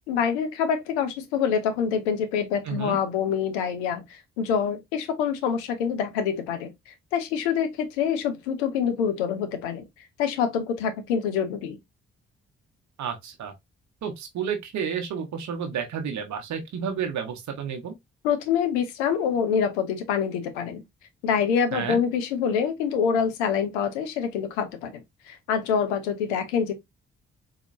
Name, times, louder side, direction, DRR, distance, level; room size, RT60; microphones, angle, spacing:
voice 1, 0.1-9.9 10.2-11.8 18.2-20.8 21.2-25.0 25.3-26.7, left 7 dB, 85° left, 0.6 m, -26 dB
voice 2, 2.6-3.0 13.0-13.5 14.0-17.9 21.7-22.0, right 7 dB, 60° right, 1.0 m, -31 dB
4.2 x 2.8 x 2.5 m
hypercardioid pair, 40°, 33 cm